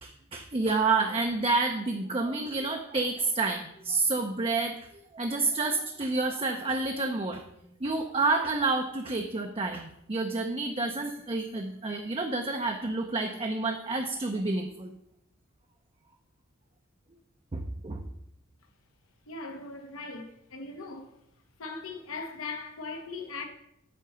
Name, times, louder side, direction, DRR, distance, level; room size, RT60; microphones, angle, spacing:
voice 1, 0.0-4.8 5.1-7.5 7.8-14.9 17.5-18.1, right 3 dB, 25° right, 0.5 m, -29 dB
voice 2, 19.3-21.1 21.6-23.4, left 3 dB, 85° left, 1.2 m, -39 dB
8.5 x 4.0 x 6.7 m
head